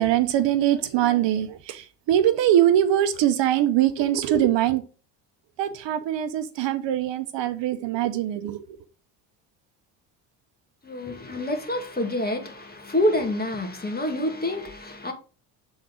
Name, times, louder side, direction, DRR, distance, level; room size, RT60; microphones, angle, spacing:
voice 1, 0.0-4.8 5.6-8.6, right 11 dB, 65° right, 0.9 m, -22 dB
voice 2, 10.8-15.1, left 1 dB, 20° left, 2.2 m, -27 dB
7.5 x 4.1 x 3.9 m
supercardioid pair, 75°, 48 cm